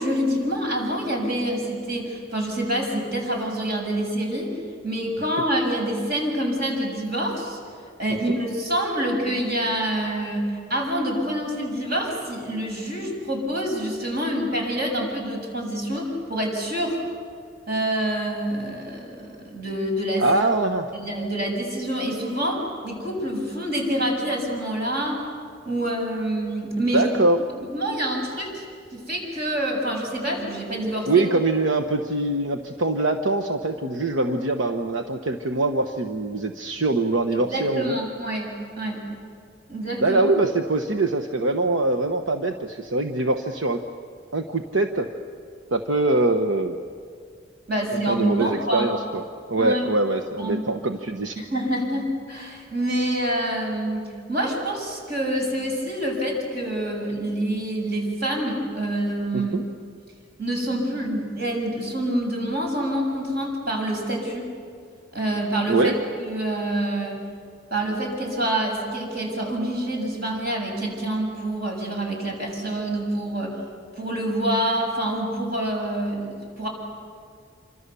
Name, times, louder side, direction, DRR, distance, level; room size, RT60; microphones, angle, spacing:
voice 1, 0.0-4.6 4.8-7.6 8.0-17.0 17.7-20.3 20.9-25.2 25.7-27.1 27.7-28.6 28.9-31.3 37.4-39.0 39.7-40.2 47.7-48.9 49.6-49.8 50.4-50.6 51.4-59.6 60.4-64.5 65.1-65.9 66.2-67.2 67.7-73.6 74.0-76.7, right 1 dB, 55° right, 1 dB, 7.2 m, -26 dB
voice 2, 20.2-20.9 26.9-27.4 31.1-38.0 40.0-43.8 44.3-45.1 45.7-46.8 48.1-49.2 49.5-51.3 59.3-59.6 65.7-66.0, right 2 dB, 90° right, 5 dB, 1.1 m, -23 dB
27.5 x 25.5 x 7.0 m, 2.2 s
head